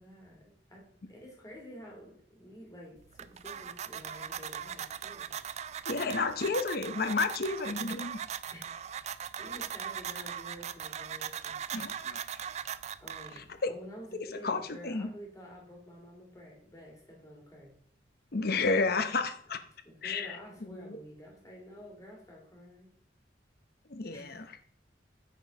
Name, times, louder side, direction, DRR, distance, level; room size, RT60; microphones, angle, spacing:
voice 1, 0.0-5.3 8.5-12.1 13.0-17.7 19.8-22.9 24.1-24.6, equal, 20° left, -2 dB, 2.6 m, -50 dB
sound 1, 3.0-13.6, right 8 dB, 40° right, 0.3 m, -40 dB
voice 2, 5.9-8.2 11.7-12.2 13.6-13.7 14.4-15.1 18.3-19.6 20.0-20.3 20.7-20.9 23.9-24.4, left 3 dB, 55° left, 9 dB, 0.8 m, -31 dB
8.9 x 4.6 x 5.4 m, 0.62 s
head